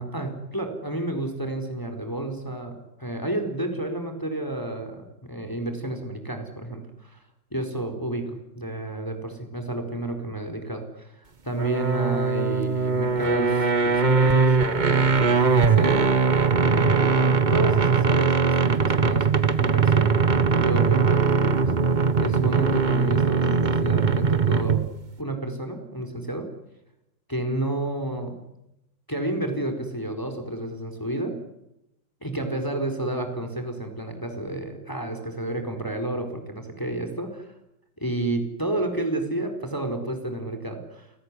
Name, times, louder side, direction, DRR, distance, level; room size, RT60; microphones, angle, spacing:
voice 1, 0.0-7.2 7.5-16.3 16.6-20.1 20.5-24.8 25.2-26.5 27.3-28.4 29.1-31.4 32.2-37.5 38.0-41.1, right 1 dB, 10° left, 6 dB, 4.2 m, -31 dB
sound 1, 11.6-25.0, right 5 dB, 30° right, 1.1 m, -21 dB
30.0 x 19.0 x 9.8 m, 0.87 s
omnidirectional pair, 2.1 m